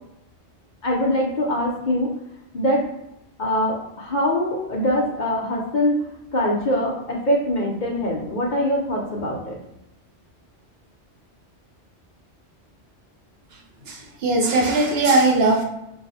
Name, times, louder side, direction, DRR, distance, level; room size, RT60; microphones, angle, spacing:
voice 1, 0.8-2.1 2.5-2.9 3.4-6.1 6.3-9.6, left 1 dB, 50° left, -2 dB, 0.7 m, -23 dB
voice 2, 13.9-15.6, right 2 dB, 65° right, 0 dB, 0.9 m, -19 dB
4.6 x 2.1 x 2.7 m, 0.85 s
omnidirectional pair, 1.2 m